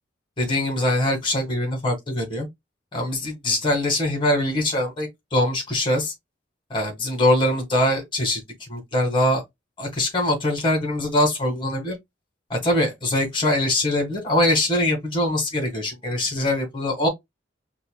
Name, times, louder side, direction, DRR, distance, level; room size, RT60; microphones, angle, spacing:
voice 1, 0.4-2.5 2.9-6.1 6.7-8.4 8.7-9.4 9.8-12.0 12.5-17.1, left 1 dB, 25° left, 1.7 m, -23 dB
5.5 x 2.7 x 2.2 m
head